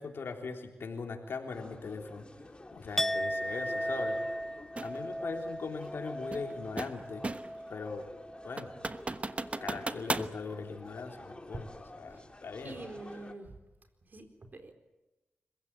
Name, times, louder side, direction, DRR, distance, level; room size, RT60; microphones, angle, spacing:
voice 1, 0.0-2.3 2.7-4.2 4.8-7.3 7.7-8.1 8.4-8.8 9.6-12.9, left 4 dB, 70° left, 3 dB, 3.6 m, -40 dB
sound 1, 1.5-13.3, left 1 dB, 25° left, 3.1 m, -51 dB
Chink clink, 3.0-8.9 9.2-9.6, equal, 5° left, 0.8 m, -37 dB
sound 2, 4.8-5.0 6.3-7.6 8.0-8.1 8.6-10.3, right 2 dB, 30° right, 1.1 m, -36 dB
voice 2, 12.6-13.5 14.1-14.7, right 2 dB, 50° right, 7 dB, 4.2 m, -46 dB
26.0 x 16.0 x 9.0 m, 1.1 s
cardioid pair, 45°, 4 cm